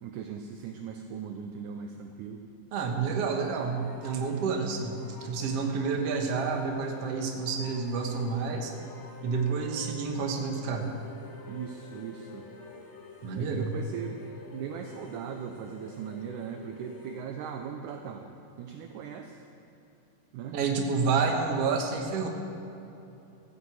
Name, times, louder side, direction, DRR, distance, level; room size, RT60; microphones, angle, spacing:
voice 1, 0.0-2.4 4.4-4.5 11.5-12.5 13.3-18.3 18.6-19.4 20.3-20.6, right 7 dB, 80° right, 4 dB, 1.8 m, -39 dB
voice 2, 2.7-8.7 9.2-10.9 13.2-13.7 20.5-22.3, right 5 dB, 55° right, 2 dB, 1.9 m, -29 dB
sound 1, 3.1-17.3, left 2 dB, 85° left, 3.7 m, -48 dB
16.0 x 15.0 x 4.8 m, 2.9 s
omnidirectional pair, 4.5 m